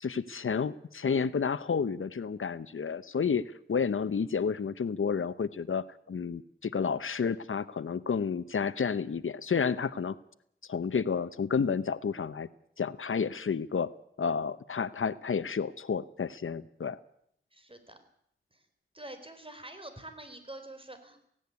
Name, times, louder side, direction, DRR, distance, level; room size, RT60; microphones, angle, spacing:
voice 1, 0.0-10.2 10.7-12.5 12.8-13.9 14.2-17.0, left 6 dB, 85° left, 15 dB, 0.8 m, -31 dB
voice 2, 17.5-18.0 18.5-18.6 18.9-21.3, right 1 dB, 25° right, 8 dB, 4.4 m, -46 dB
17.5 x 17.0 x 9.6 m, 0.69 s
wide cardioid pair, 55°, 20 cm